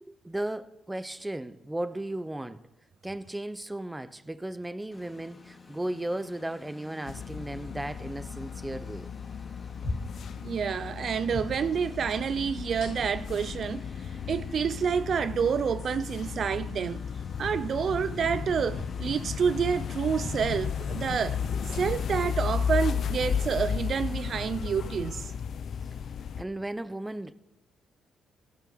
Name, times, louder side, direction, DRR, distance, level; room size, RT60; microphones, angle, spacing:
voice 1, 0.0-2.6 3.0-9.1 26.4-27.3, right 1 dB, 10° right, 0.9 m, -35 dB
Engine, 4.9-24.3, left 4 dB, 30° left, 3.0 m, -50 dB
sound 1, 7.1-26.4, left 7 dB, 60° left, 0.7 m, -34 dB
sound 2, 9.8-10.2 11.3-11.6 12.8-13.3 14.3-14.4 15.8-16.0 18.7-19.0 20.2-20.5 21.7-22.1 23.2-23.3 24.7-24.9, left 2 dB, 80° left, 3.6 m, -39 dB
voice 2, 10.4-17.1 17.4-25.3, right 7 dB, 55° right, 0.5 m, -29 dB
15.5 x 12.5 x 6.7 m
cardioid pair, 90°, 0 cm